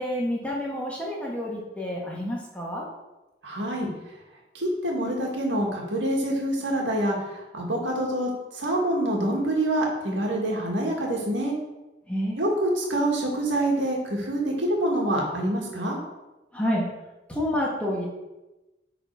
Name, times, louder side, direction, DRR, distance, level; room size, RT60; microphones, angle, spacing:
voice 1, 0.0-2.8 12.1-12.4 16.5-16.8 17.3-18.0, equal, 5° left, -3 dB, 1.4 m, -28 dB
voice 2, 3.4-3.9 4.5-11.5 12.4-16.0, right 1 dB, 80° right, -1 dB, 1.9 m, -26 dB
9.2 x 4.0 x 4.7 m, 1.0 s
head